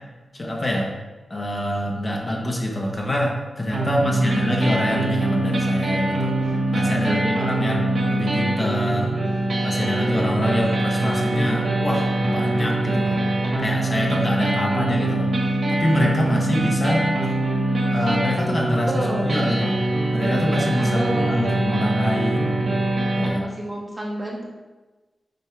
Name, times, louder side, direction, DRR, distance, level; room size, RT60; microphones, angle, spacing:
voice 1, 0.3-0.9 1.3-6.4 6.7-9.2 9.6-13.2 13.6-15.3 15.7-17.1 17.9-18.9 19.2-19.8 20.1-22.6 23.2-23.4, equal, 25° left, -2 dB, 1.1 m, -25 dB
sound 1, 3.7-23.3, right 2 dB, 55° right, 2.1 m, -23 dB
voice 2, 3.8-4.3 6.9-7.7 13.2-13.4 18.9-19.6 20.5-21.4 23.1-24.4, right 1 dB, 20° right, -2 dB, 1.2 m, -30 dB
7.6 x 3.6 x 5.8 m, 1.2 s
wide cardioid pair, 180°, 0 cm